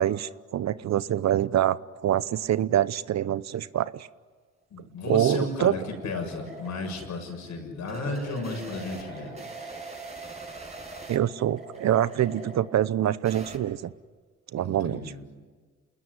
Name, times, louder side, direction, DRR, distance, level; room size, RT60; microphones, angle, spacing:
voice 1, 0.0-4.1 5.0-5.7 11.1-13.9 14.5-15.0, right 11 dB, 60° right, 16 dB, 0.9 m, -25 dB
sound 1, 4.6-13.6, right 2 dB, 20° right, 6.0 m, -42 dB
voice 2, 4.7-9.4 14.6-15.2, left 3 dB, 70° left, 3 dB, 7.2 m, -34 dB
28.0 x 20.5 x 9.9 m, 1.5 s
cardioid pair, 90°, 30 cm